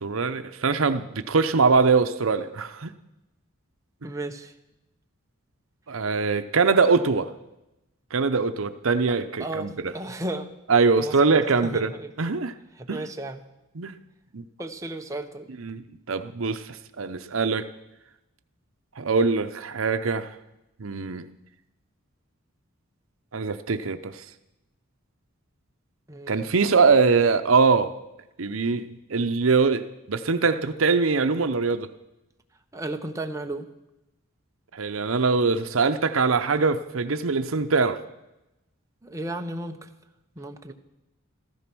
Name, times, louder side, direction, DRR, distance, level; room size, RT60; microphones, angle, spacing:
voice 1, 0.0-2.9 5.9-7.3 8.1-9.9 10.7-11.9 12.2-12.5 12.9-13.1 13.7-13.9 14.3-14.4 15.6-15.8 16.1-17.6 19.0-20.3 20.8-21.3 23.3-24.2 26.3-27.9 28.4-31.9 34.7-38.0, right 4 dB, 75° right, 9 dB, 0.8 m, -23 dB
voice 2, 4.0-4.5 9.4-10.5 11.0-12.1 12.8-13.4 14.6-15.5 26.1-26.4 32.7-33.7 39.0-39.9 40.4-40.7, right 2 dB, 15° right, 4 dB, 1.0 m, -34 dB
15.0 x 14.5 x 6.1 m, 0.94 s
head